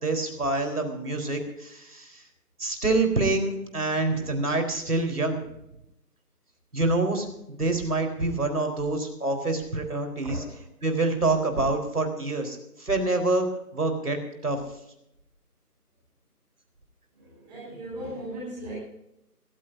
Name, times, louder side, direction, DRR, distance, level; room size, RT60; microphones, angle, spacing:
voice 1, 0.0-2.2 2.6-5.4 6.7-7.3 7.6-10.4 10.8-13.5 13.7-14.6, right 2 dB, 70° right, 5 dB, 4.1 m, -26 dB
voice 2, 17.1-18.7, right 1 dB, 5° right, -12 dB, 4.4 m, -37 dB
23.5 x 15.5 x 2.6 m, 0.82 s
figure-of-eight pair, 180°, 47 cm